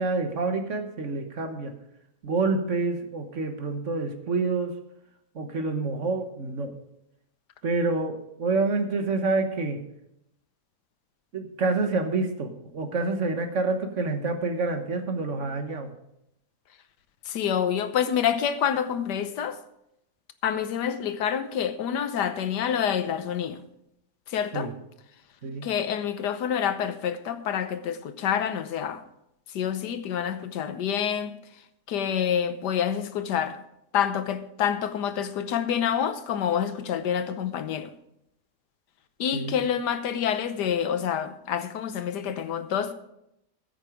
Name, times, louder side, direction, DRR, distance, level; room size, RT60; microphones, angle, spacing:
voice 1, 0.0-1.7 2.2-4.7 5.3-6.7 7.6-9.8 11.3-15.9 24.5-24.7 25.4-25.7 39.3-39.6, right 3 dB, 50° right, 1.5 m, -27 dB
voice 2, 17.3-19.6 20.4-23.6 24.3-24.7 25.6-29.0 29.5-31.4 31.9-33.6 33.9-37.9 39.2-42.9, left 8 dB, 90° left, 1.5 m, -27 dB
14.5 x 8.0 x 4.9 m
omnidirectional pair, 1.7 m